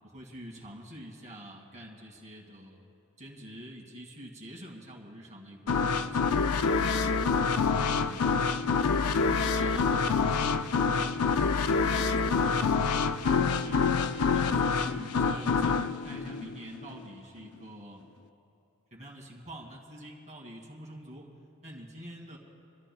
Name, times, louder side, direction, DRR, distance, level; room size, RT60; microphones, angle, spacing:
voice 1, 0.0-2.8 3.2-6.3 6.6-8.4 9.0-13.8 14.1-15.8 16.0-18.0 18.9-21.3 21.6-22.4, equal, 35° right, -2 dB, 2.3 m, -46 dB
sound 1, 5.7-17.1, left 5 dB, 80° left, 0.5 m, -26 dB
29.5 x 13.0 x 2.3 m, 2.9 s
head